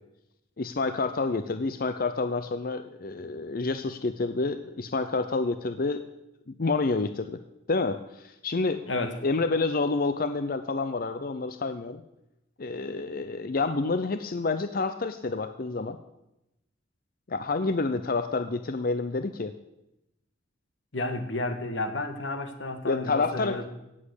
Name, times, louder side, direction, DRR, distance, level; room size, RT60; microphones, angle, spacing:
voice 1, 0.6-6.0 6.5-7.4 7.7-8.8 9.2-12.0 12.6-16.0 17.3-19.5 22.9-23.6, left 3 dB, 50° left, 10 dB, 0.6 m, -28 dB
voice 2, 8.9-9.2 20.9-23.7, left 2 dB, 85° left, 8 dB, 1.8 m, -31 dB
17.0 x 7.6 x 8.2 m, 0.90 s
head